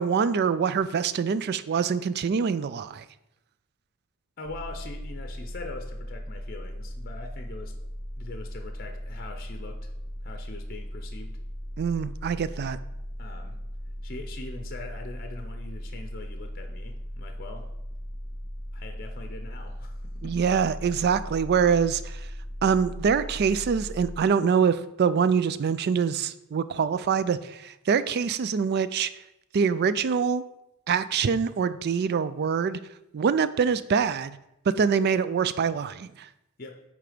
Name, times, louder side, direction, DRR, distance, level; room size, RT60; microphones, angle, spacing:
voice 1, 0.0-3.1 11.8-12.8 20.2-22.3 22.6-29.1 29.5-30.4 30.9-32.8 33.1-34.4 34.7-36.3, right 6 dB, 45° right, 15 dB, 0.3 m, -25 dB
voice 2, 4.4-7.7 8.2-9.9 10.2-11.4 13.2-13.6 14.0-17.7 18.7-20.4 20.9-21.0 36.6-36.8, left 3 dB, 40° left, 5 dB, 0.6 m, -42 dB
sound 1, 4.4-24.2, equal, 5° right, 0.7 m, -38 dB
8.7 x 3.4 x 5.0 m, 0.87 s
head